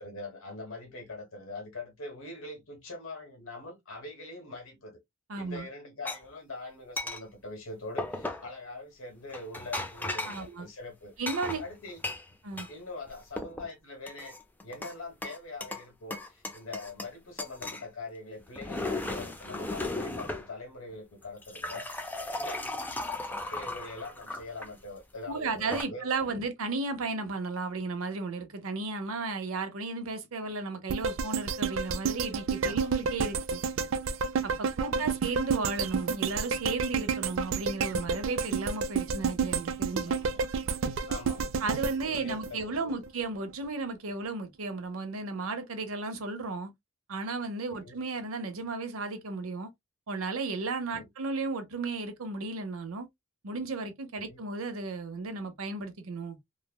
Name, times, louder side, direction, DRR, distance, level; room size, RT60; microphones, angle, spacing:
voice 1, 0.0-5.0 5.3-11.1 11.6-12.1 12.7-14.4 14.6-22.1 22.4-23.0 23.3-26.4 32.6-32.9 34.9-35.2 40.1-40.4 41.1-41.4 42.0-42.9 47.7-48.0 50.9-51.1 54.1-54.4, left 2 dB, 80° left, 1.3 m, -43 dB
voice 2, 5.3-5.7 10.2-10.7 11.2-11.6 12.4-12.7 25.3-33.6 34.4-40.1 41.6-46.7 47.1-49.7 50.1-53.1 53.4-56.4, right 3 dB, 85° right, 0.7 m, -34 dB
sound 1, 6.1-6.2 7.0-7.2 8.0-8.5 9.3-10.5 11.3-12.7 13.1-13.7 14.1-14.9 15.2-15.9 16.1-17.1 17.4-17.9 18.4-20.5 21.2-24.7 25.5-25.8, left 2 dB, 10° left, 0.3 m, -36 dB
sound 2, 30.9-43.1 43.5-43.6, right 5 dB, 65° right, 0.3 m, -30 dB
3.2 x 2.0 x 2.2 m
head